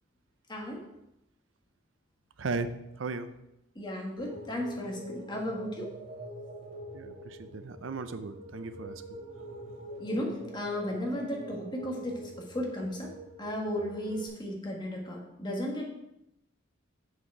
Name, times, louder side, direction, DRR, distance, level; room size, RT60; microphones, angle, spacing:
voice 1, 0.5-0.8 3.7-5.9 10.0-13.1 13.4-15.9, left 1 dB, 25° left, 0 dB, 1.7 m, -35 dB
voice 2, 2.4-2.7 3.0-3.3 6.9-9.0, right 4 dB, 85° right, 11 dB, 0.6 m, -36 dB
sound 1, 4.2-14.3, right 1 dB, 35° right, 2.5 m, -45 dB
7.2 x 6.4 x 4.8 m, 0.85 s
head